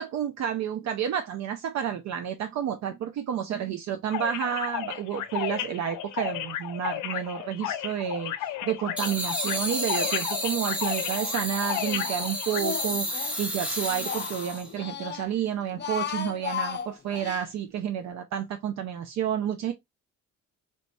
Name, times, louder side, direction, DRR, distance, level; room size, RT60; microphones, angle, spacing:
voice 1, 0.0-19.7, right 9 dB, 65° right, 0.5 m, -30 dB
sound 1, 4.1-12.6, left 12 dB, 85° left, 0.5 m, -34 dB
sound 2, 9.0-14.7, equal, 5° right, 0.8 m, -31 dB
Speech, 9.6-10.3 10.6-13.4 13.8-15.3 15.7-17.4, left 8 dB, 35° left, 0.5 m, -36 dB
3.2 x 3.1 x 2.5 m
cardioid pair, 90°, 30 cm